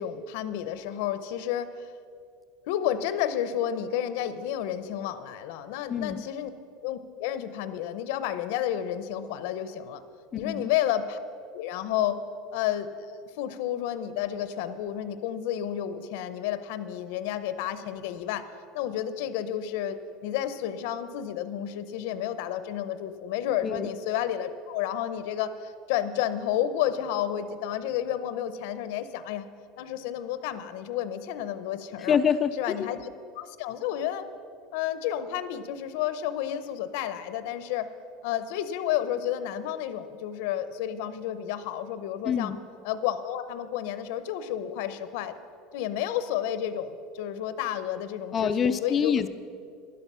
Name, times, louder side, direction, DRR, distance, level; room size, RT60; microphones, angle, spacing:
voice 1, 0.0-1.9 2.7-6.5 6.8-10.0 10.3-11.2 11.5-12.2 12.5-12.9 13.4-18.5 18.7-29.5 29.8-32.2 32.6-33.1 33.4-34.3 34.7-37.9 38.2-42.5 42.8-45.4 45.7-49.1, left 11 dB, 65° left, 12 dB, 0.7 m, -31 dB
voice 2, 5.9-6.2 10.3-10.7 23.6-23.9 32.0-32.9 42.2-42.6 48.3-49.3, left 7 dB, 20° left, 12 dB, 0.4 m, -26 dB
12.0 x 11.5 x 5.5 m, 2.3 s
supercardioid pair, 165°, 0 cm